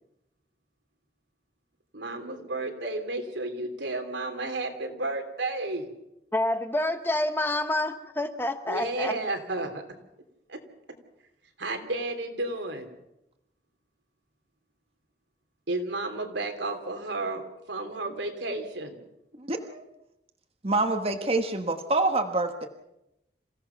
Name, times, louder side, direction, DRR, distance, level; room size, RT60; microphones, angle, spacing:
voice 1, 1.9-5.9 8.7-9.8 10.5-10.6 11.6-12.9 15.7-17.4 17.7-19.0, right 2 dB, 85° right, 3.2 m, -32 dB
voice 2, 6.3-9.1, left 1 dB, 10° left, 1.0 m, -28 dB
voice 3, 19.3-19.8 20.6-22.7, right 2 dB, 35° right, 1.3 m, -26 dB
27.5 x 16.5 x 5.9 m
head